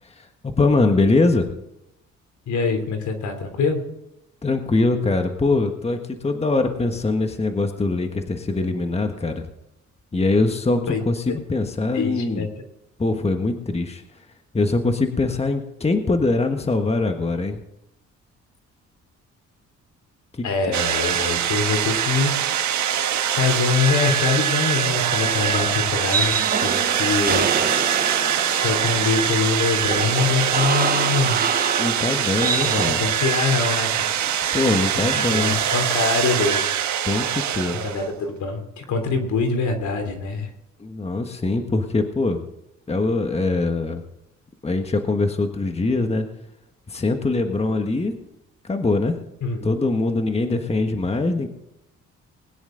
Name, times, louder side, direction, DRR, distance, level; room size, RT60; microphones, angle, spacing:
voice 1, 0.0-1.5 4.4-9.5 10.1-12.5 13.0-14.3 14.5-17.6 20.3-20.5 31.8-33.0 34.5-35.6 37.0-37.8 40.8-42.4 42.9-44.0 44.6-46.3 46.9-48.1 48.6-49.2 49.6-51.5, left 3 dB, 20° left, 6 dB, 1.5 m, -22 dB
voice 2, 2.5-3.8 10.9-11.0 11.9-12.5 20.4-22.3 23.3-26.3 26.6-27.5 28.5-31.4 32.6-34.2 34.9-36.6 37.7-40.5 49.4-49.7, left 4 dB, 70° left, 5 dB, 3.4 m, -24 dB
sound 1, 20.7-38.2, right 9 dB, 70° right, 1.5 m, -23 dB
sound 2, 25.1-32.9, right 5 dB, 30° right, 0.9 m, -27 dB
21.0 x 10.0 x 3.9 m, 0.85 s
cardioid pair, 90°, 30 cm